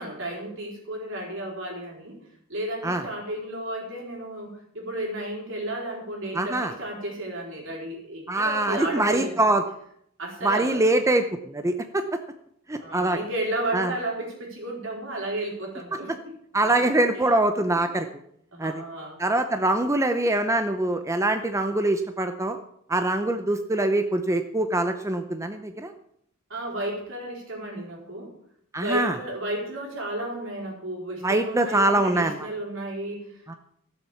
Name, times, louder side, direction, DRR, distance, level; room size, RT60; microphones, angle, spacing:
voice 1, 0.0-2.2 2.5-9.4 10.2-11.0 12.8-16.3 16.6-16.8 17.1-17.3 18.5-19.2 26.5-28.3 28.8-33.6, right 1 dB, 65° right, 0 dB, 4.2 m, -33 dB
voice 2, 6.3-6.7 8.3-9.6 10.4-12.0 12.7-13.2 13.7-13.9 15.9-16.0 16.5-18.1 18.6-18.8 19.2-22.6 22.9-25.9 28.7-29.2 31.2-32.4 33.5-33.6, right 2 dB, 15° right, 7 dB, 0.6 m, -24 dB
15.0 x 7.3 x 7.1 m, 0.72 s
head